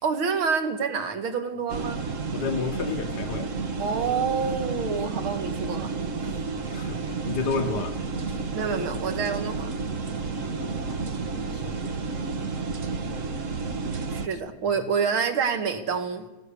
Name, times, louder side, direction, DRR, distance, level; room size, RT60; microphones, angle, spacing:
voice 1, 0.0-2.0 3.8-6.0 6.2-6.3 8.5-9.7 14.1-16.3, right 6 dB, 45° right, 2.6 m, -27 dB
sound 1, 1.7-14.3, right 4 dB, 75° right, 0.7 m, -31 dB
voice 2, 2.3-3.5 6.5-8.4 10.4-12.0 12.3-12.4 14.3-14.4, left 5 dB, 55° left, 1.1 m, -33 dB
28.0 x 17.5 x 7.0 m
omnidirectional pair, 3.3 m